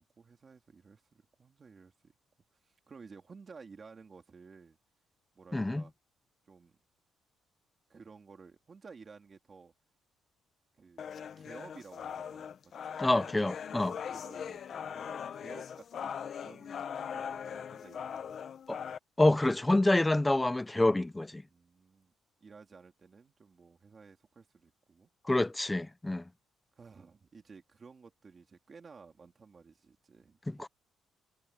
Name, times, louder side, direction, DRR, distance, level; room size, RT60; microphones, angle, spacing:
voice 1, 0.0-2.1 2.6-4.8 5.3-5.9 6.4-6.8 7.9-9.7 10.8-13.0 13.8-14.6 14.9-18.5 21.5-22.1 22.4-25.1 26.7-30.7, right 5 dB, 25° right, 2.6 m, -54 dB
voice 2, 5.5-5.8 13.0-13.9 18.7-18.8 19.2-21.4 25.3-26.2 30.5-30.7, left 2 dB, 10° left, 0.6 m, -27 dB
sound 1, 11.0-19.0, left 7 dB, 40° left, 0.7 m, -40 dB
cardioid pair, 160°, 0 cm